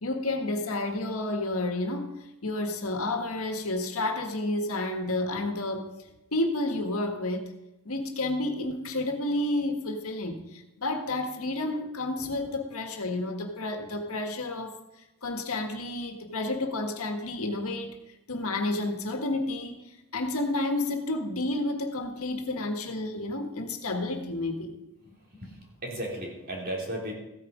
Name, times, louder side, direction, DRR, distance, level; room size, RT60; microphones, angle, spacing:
voice 1, 0.0-2.1 2.4-5.9 6.3-7.5 7.8-14.8 15.2-18.0 18.3-19.8 20.1-24.7, left 2 dB, 80° left, 5 dB, 1.7 m, -30 dB
voice 2, 25.0-27.1, right 1 dB, 40° right, -1 dB, 3.1 m, -36 dB
15.0 x 9.2 x 5.0 m, 0.93 s
head